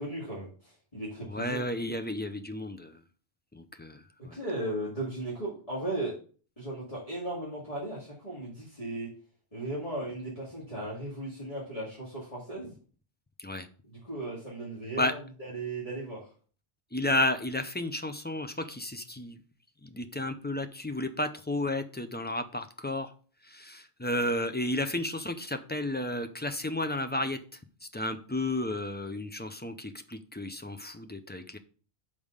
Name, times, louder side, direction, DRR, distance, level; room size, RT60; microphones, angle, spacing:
voice 1, 0.0-1.6 4.3-6.1 6.6-9.1 9.5-12.7 13.9-16.2, right 1 dB, 35° left, -6 dB, 2.3 m, -36 dB
voice 2, 1.3-3.0 3.5-4.4 13.4-13.7 15.0-15.1 16.9-19.4 19.8-23.1 23.4-27.4 27.9-31.6, left 1 dB, 15° left, 8 dB, 0.4 m, -32 dB
5.4 x 5.1 x 6.5 m, 0.41 s
omnidirectional pair, 1.1 m